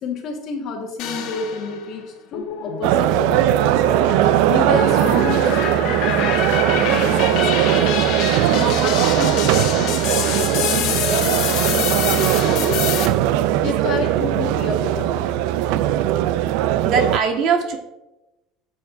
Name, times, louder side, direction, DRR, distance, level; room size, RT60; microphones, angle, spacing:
voice 1, 0.0-2.0 2.3-3.8 4.5-7.9 8.5-10.0 10.3-13.1 13.6-15.3, left 4 dB, 45° left, 0 dB, 1.4 m, -29 dB
sound 1, 1.0-1.9 2.3-13.1, left 8 dB, 60° left, 1.2 m, -26 dB
sound 2, 2.8-17.2, right 13 dB, 70° right, 0.3 m, -19 dB
voice 2, 16.8-17.8, right 5 dB, 50° right, 4 dB, 1.4 m, -20 dB
13.5 x 7.0 x 2.6 m, 0.97 s
cardioid pair, 160°, 0 cm